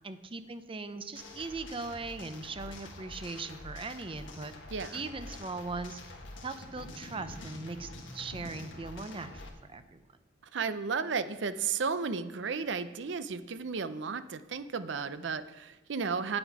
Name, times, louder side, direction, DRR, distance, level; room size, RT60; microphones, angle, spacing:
voice 1, 0.0-4.5 4.9-6.0 6.4-10.0, right 3 dB, 30° right, 11 dB, 0.6 m, -40 dB
sound 1, 1.1-9.5, left 2 dB, 85° left, 1.5 m, -46 dB
voice 2, 4.7-5.0 10.5-16.4, right 5 dB, 70° right, 12 dB, 0.6 m, -33 dB
9.2 x 8.7 x 4.8 m, 1.0 s
head